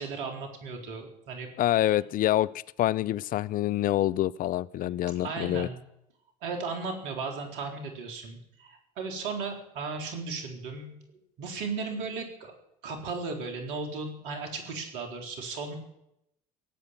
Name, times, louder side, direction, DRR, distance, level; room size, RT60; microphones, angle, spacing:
voice 1, 0.0-1.5 5.2-5.8 6.4-10.9 11.4-12.6 12.8-15.8, right 4 dB, 65° right, 3.9 m, -36 dB
voice 2, 1.6-2.5 2.8-5.7, left 13 dB, 45° left, 0.5 m, -26 dB
17.5 x 8.6 x 9.1 m
figure-of-eight pair, 60°, 20 cm